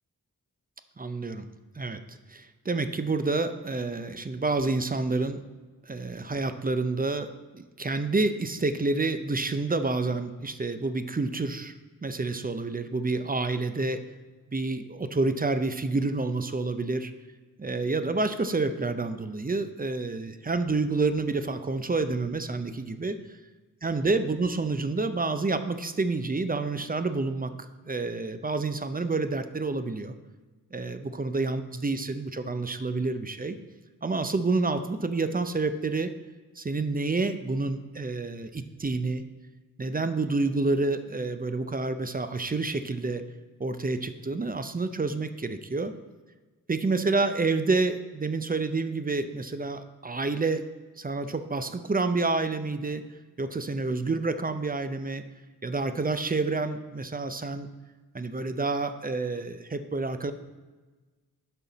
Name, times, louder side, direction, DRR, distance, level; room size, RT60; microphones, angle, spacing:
voice 1, 1.0-1.5 1.8-5.4 5.8-11.7 12.0-14.1 14.5-17.1 17.6-23.2 23.8-30.1 30.7-33.6 34.0-36.1 36.6-39.2 39.8-43.2 43.6-45.9 46.7-50.7 51.0-53.0 53.4-55.2 55.6-57.7 58.1-60.3, right 3 dB, 25° right, 10 dB, 0.5 m, -28 dB
8.5 x 5.6 x 4.0 m, 1.3 s
wide cardioid pair, 70°, 35 cm